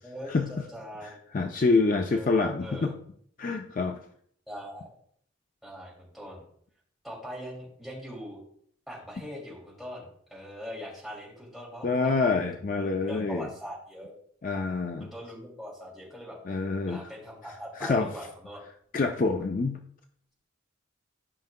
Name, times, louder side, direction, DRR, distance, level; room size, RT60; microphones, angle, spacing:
voice 1, 0.0-1.2 2.1-2.9 4.5-4.9 5.6-6.4 7.0-8.4 8.9-12.3 13.1-14.2 15.0-16.4 16.9-18.6, equal, ahead, -5 dB, 2.4 m, -41 dB
voice 2, 1.0-2.9 3.4-4.0 11.8-13.5 14.4-15.1 16.5-17.1 17.8-18.1 18.9-19.8, left 3 dB, 40° left, 5 dB, 0.4 m, -26 dB
12.5 x 5.4 x 2.2 m, 0.63 s
head